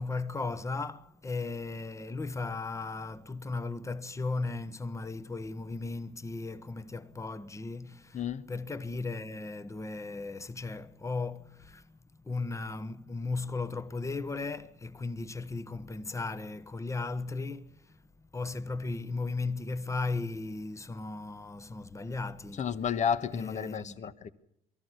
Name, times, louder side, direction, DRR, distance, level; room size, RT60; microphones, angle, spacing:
voice 1, 0.0-22.7 23.3-24.1, left 3 dB, 15° left, 1.2 m, -36 dB
voice 2, 8.1-8.5 22.6-24.3, left 7 dB, 45° left, 1.3 m, -31 dB
23.5 x 14.5 x 8.3 m
cardioid pair, 110°, 17 cm